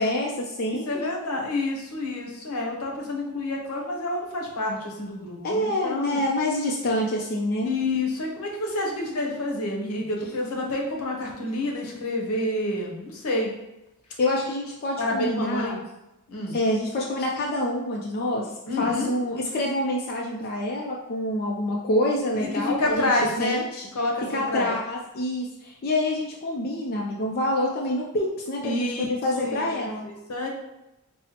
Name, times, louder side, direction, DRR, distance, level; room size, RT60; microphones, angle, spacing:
voice 1, 0.0-1.1 5.4-7.7 14.2-15.8 16.5-23.1 23.4-23.8 24.3-30.1, left 1 dB, 45° left, -2 dB, 0.4 m, -27 dB
voice 2, 0.7-6.2 7.6-13.5 15.0-15.8 16.3-16.6 18.7-19.1 22.3-23.6 23.9-24.7 28.6-29.1 29.3-30.5, left 2 dB, 75° left, 0 dB, 0.8 m, -28 dB
5.3 x 2.0 x 2.8 m, 0.93 s
head